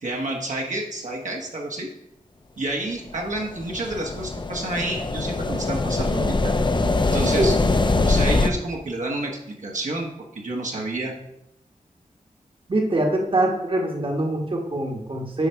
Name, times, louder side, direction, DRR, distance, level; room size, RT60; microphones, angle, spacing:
voice 1, 0.0-1.9 2.6-6.5 7.1-7.6 8.0-10.1 10.3-11.1, right 2 dB, 65° right, -1 dB, 1.3 m, -29 dB
sound 1, 3.2-8.5, left 3 dB, 35° left, 0.6 m, -23 dB
voice 2, 7.2-7.5 12.7-15.5, right 1 dB, 40° right, 1 dB, 1.4 m, -23 dB
9.8 x 3.3 x 5.7 m, 0.80 s
wide cardioid pair, 90°, 14 cm